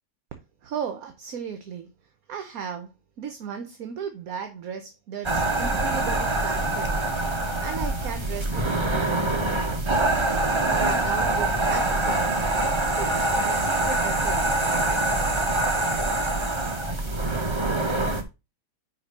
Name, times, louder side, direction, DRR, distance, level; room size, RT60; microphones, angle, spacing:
voice 1, 0.6-1.9 2.3-2.9 3.2-7.0 7.3-9.3 10.7-12.5 13.0-14.5, right 7 dB, 65° right, 1.2 m, -36 dB
sound 1, 5.2-18.2, right 2 dB, 20° right, 0.8 m, -24 dB
5.4 x 5.2 x 5.3 m
omnidirectional pair, 1.7 m